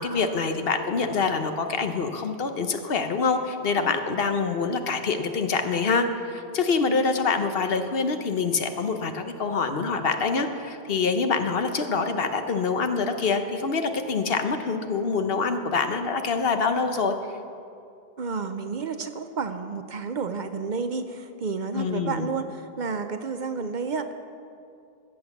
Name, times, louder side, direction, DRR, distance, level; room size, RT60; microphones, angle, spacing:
voice 1, 0.0-17.1 21.7-22.3, left 4 dB, 65° left, 7 dB, 1.1 m, -25 dB
voice 2, 18.2-24.1, right 5 dB, 50° right, 9 dB, 0.7 m, -31 dB
14.0 x 8.6 x 7.1 m, 2.5 s
omnidirectional pair, 1.1 m